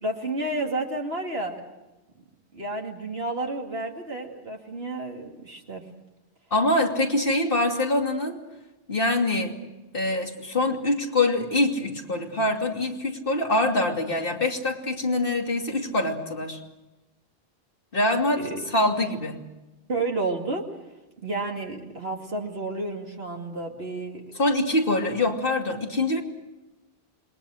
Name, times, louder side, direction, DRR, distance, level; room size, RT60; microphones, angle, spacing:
voice 1, 0.0-1.6 2.5-5.9 18.4-18.7 19.9-20.7 21.2-24.2, right 2 dB, 65° right, 1 dB, 2.7 m, -31 dB
voice 2, 6.5-8.4 8.9-9.6 9.9-16.6 17.9-19.4 24.4-26.2, left 2 dB, 55° left, 3 dB, 3.0 m, -24 dB
27.5 x 22.5 x 6.4 m, 1.0 s
omnidirectional pair, 1.1 m